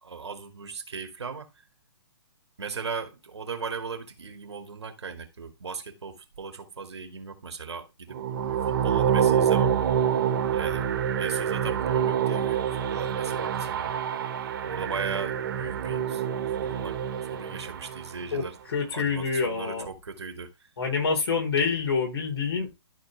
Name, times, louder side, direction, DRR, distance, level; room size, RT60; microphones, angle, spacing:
voice 1, 0.0-1.5 2.6-8.2 8.5-9.7 10.5-10.8 11.2-13.9 14.6-16.2 16.6-18.6 18.9-20.5, right 5 dB, 85° right, 2.2 m, -37 dB
sound 1, 8.1-18.2, right 8 dB, 50° right, 1.5 m, -26 dB
voice 2, 18.3-19.9 20.8-22.7, left 5 dB, 65° left, 4.4 m, -27 dB
13.0 x 4.5 x 3.4 m
hypercardioid pair, 145°, 14 cm